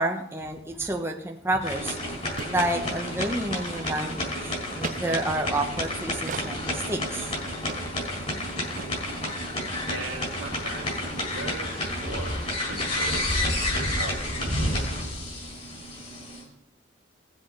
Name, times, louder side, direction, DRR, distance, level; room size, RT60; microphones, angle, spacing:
voice 1, 0.0-2.1 2.4-7.4, right 1 dB, 10° right, 2 dB, 0.8 m, -29 dB
sound 1, 1.6-16.4, left 1 dB, 30° left, 3.7 m, -30 dB
sound 2, 1.6-1.7 1.9-2.0 2.4-2.6 2.9-3.1 3.5-4.2 4.8-5.0 6.3-6.5 7.0-7.1 7.7-7.8 8.1-8.2 8.4-8.5 8.8-8.9, right 5 dB, 40° right, 0.4 m, -37 dB
voice 2, 9.9-14.7, right 3 dB, 85° right, 0 dB, 2.4 m, -39 dB
17.5 x 7.7 x 3.8 m, 0.82 s
head